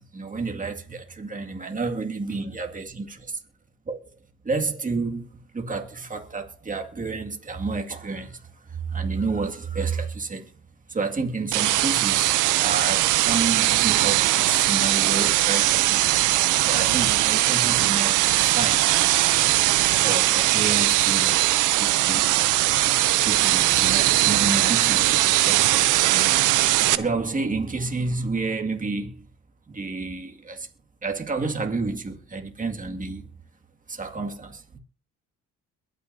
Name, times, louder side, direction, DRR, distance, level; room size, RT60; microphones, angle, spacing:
voice 1, 0.0-3.1 3.9-4.0 4.5-5.3 5.5-8.3 8.9-10.4 10.9-12.3 12.6-16.0 16.6-18.8 20.0-21.3 21.7-21.8 22.1-22.3 23.2-25.9 26.1-26.6 26.9-29.1 29.8-30.6 31.0-33.2 34.0-34.5, right 4 dB, 25° right, 2.2 m, -30 dB
sound 1, 11.5-27.0, right 15 dB, 80° right, 0.7 m, -20 dB
22.0 x 9.2 x 2.8 m
cardioid pair, 90°, 30 cm